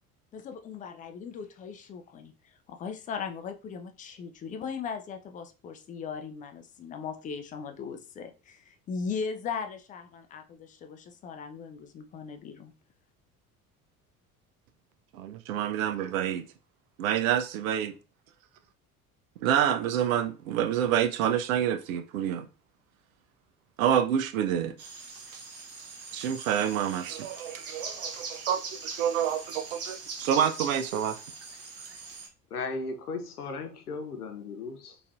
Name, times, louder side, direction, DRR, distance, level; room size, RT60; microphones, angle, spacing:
voice 1, 0.3-2.3 2.7-12.7, left 6 dB, 20° left, 0.3 m, -38 dB
voice 2, 15.1-16.4 17.0-17.9 19.4-22.5 23.8-24.7 26.1-31.2, right 9 dB, 65° right, 0.5 m, -28 dB
sound 1, 24.8-32.3, right 4 dB, 35° right, 0.9 m, -41 dB
voice 3, 32.5-35.0, left 3 dB, 85° left, 0.6 m, -36 dB
4.0 x 2.5 x 2.3 m
figure-of-eight pair, 65°, 45 cm